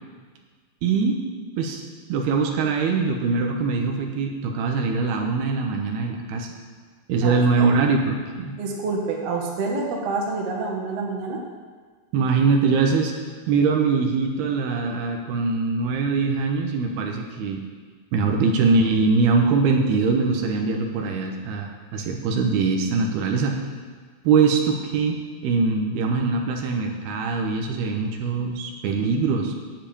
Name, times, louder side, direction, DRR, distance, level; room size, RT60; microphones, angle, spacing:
voice 1, 0.8-1.2 1.6-1.8 2.1-6.5 7.1-8.6 12.1-13.1 13.5-17.6 18.1-23.6 24.2-29.5, right 4 dB, 85° right, 2 dB, 3.1 m, -22 dB
voice 2, 7.2-7.7 8.6-11.4, right 3 dB, 50° right, -1 dB, 2.3 m, -28 dB
9.5 x 8.1 x 8.7 m, 1.5 s
omnidirectional pair, 4.5 m